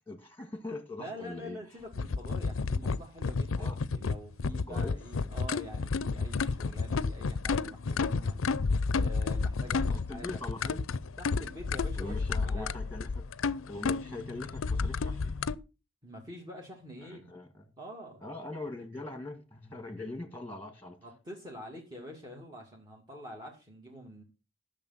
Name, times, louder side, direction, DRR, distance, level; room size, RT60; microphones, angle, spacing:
voice 1, 0.1-1.6 3.6-3.8 4.7-5.0 9.9-10.8 12.0-13.2 13.6-15.4 17.0-17.6 18.2-21.0, left 2 dB, 10° left, 1.8 m, -42 dB
voice 2, 1.0-8.4 9.0-10.7 11.2-12.8 14.1-14.2 16.0-17.3 17.8-18.2 21.0-24.2, equal, 20° right, 2.3 m, -46 dB
sound 1, 1.9-15.6, left 4 dB, 90° left, 0.5 m, -31 dB
12.0 x 6.7 x 5.8 m
head